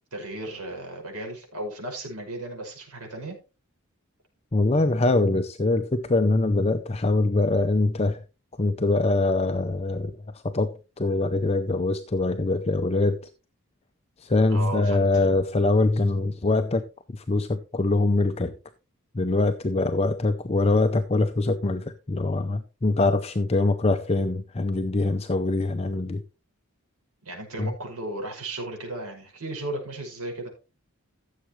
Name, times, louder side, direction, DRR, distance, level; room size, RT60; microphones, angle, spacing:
voice 1, 0.1-3.4 14.5-15.3 27.2-30.5, right 1 dB, 85° right, 5.5 m, -35 dB
voice 2, 4.5-8.2 8.6-10.1 10.4-13.2 14.2-18.5 19.1-26.2 27.6-27.7, left 2 dB, 25° left, 0.5 m, -23 dB
15.0 x 7.4 x 3.1 m
head